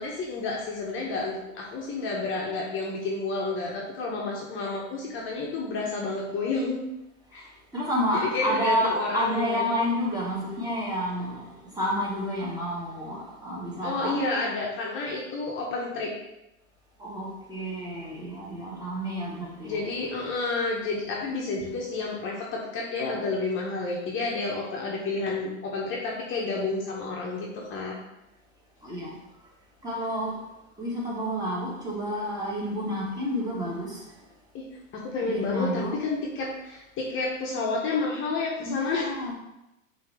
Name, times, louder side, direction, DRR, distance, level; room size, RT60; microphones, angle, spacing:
voice 1, 0.0-6.8 7.3-7.4 8.1-9.7 13.8-16.1 19.6-28.0 34.5-34.6 34.9-39.1, left 3 dB, 30° left, -2 dB, 0.8 m, -30 dB
voice 2, 7.7-14.2 17.0-19.8 28.8-29.1 29.8-30.3 30.8-34.0 35.2-36.0 38.6-39.3, equal, 10° right, -4 dB, 1.3 m, -30 dB
5.7 x 2.8 x 3.3 m, 0.92 s
hypercardioid pair, 115°, 39 cm